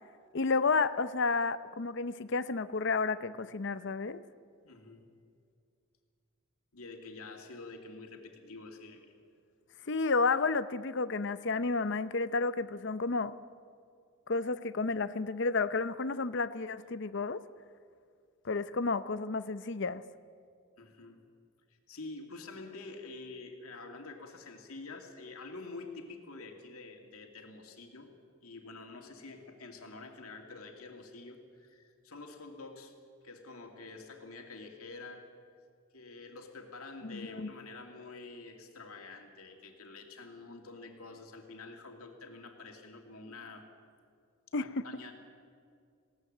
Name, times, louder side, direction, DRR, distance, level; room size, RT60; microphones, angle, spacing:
voice 1, 0.3-4.2 9.9-13.3 14.3-17.4 18.4-20.0 37.0-37.5 44.5-44.8, left 4 dB, 55° left, 14 dB, 0.7 m, -31 dB
voice 2, 4.6-5.1 6.7-9.1 20.8-21.2 21.9-28.1 28.4-32.9 33.2-35.3 35.9-43.7 44.6-45.1, left 3 dB, 85° left, 3 dB, 2.6 m, -47 dB
20.0 x 17.5 x 7.9 m, 2.3 s
head